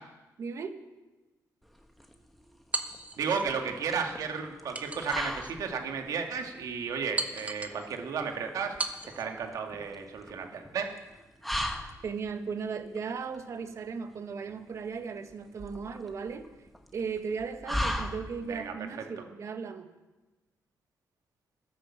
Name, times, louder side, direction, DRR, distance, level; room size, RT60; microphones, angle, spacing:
voice 1, 0.4-0.8 12.0-16.7 16.9-19.9, right 5 dB, 50° right, 8 dB, 1.3 m, -36 dB
sound 1, 1.6-18.7, equal, ahead, 1.2 m, -39 dB
sound 2, 2.7-3.5 4.7-5.6 6.1-6.2 7.2-7.8 8.8-9.3, right 3 dB, 20° right, 1.1 m, -36 dB
voice 2, 3.2-11.0 18.5-18.7, right 6 dB, 65° right, 3 dB, 2.1 m, -33 dB
14.5 x 11.0 x 7.3 m, 1.1 s
cardioid pair, 135°, 6 cm